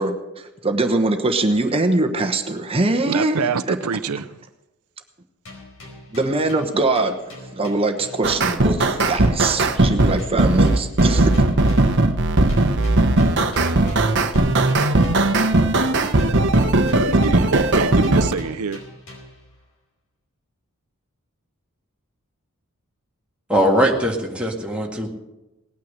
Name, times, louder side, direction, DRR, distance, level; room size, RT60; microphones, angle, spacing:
voice 1, 0.0-3.8 6.1-7.1 7.5-11.4, right 2 dB, 25° right, 5 dB, 1.1 m, -22 dB
voice 2, 3.1-4.3 17.0-18.8, right 5 dB, 75° right, 10 dB, 0.6 m, -25 dB
sound 1, 5.4-8.5 8.8-12.1 12.5-15.8 16.2-19.5, left 1 dB, 60° left, 5.0 m, -43 dB
sound 2, 8.2-18.3, right 2 dB, 55° right, 1.0 m, -18 dB
voice 3, 23.5-25.1, equal, 5° right, -1 dB, 1.8 m, -20 dB
18.5 x 9.3 x 6.6 m, 1.0 s
head